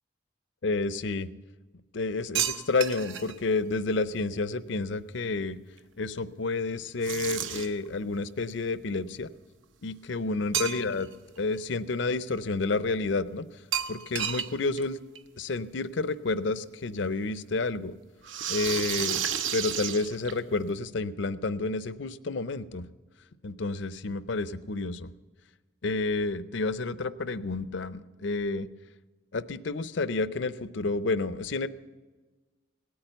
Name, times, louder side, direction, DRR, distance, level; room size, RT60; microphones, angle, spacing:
voice 1, 0.6-1.3 1.9-5.6 6.0-9.3 9.8-11.1 11.4-13.5 13.9-15.0 15.4-17.9 18.5-19.2 19.5-22.9 23.4-25.1 25.8-28.7 29.3-31.7, left 3 dB, 70° left, 15 dB, 0.6 m, -30 dB
sound 1, 2.3-3.3 7.0-7.9 10.5-11.1 11.5-11.6 13.7-14.5 14.8-14.9 15.1-15.2 16.4-16.5 18.2-20.6, right 9 dB, 75° right, 0.9 m, -31 dB
18.0 x 8.7 x 8.0 m, 1.3 s
head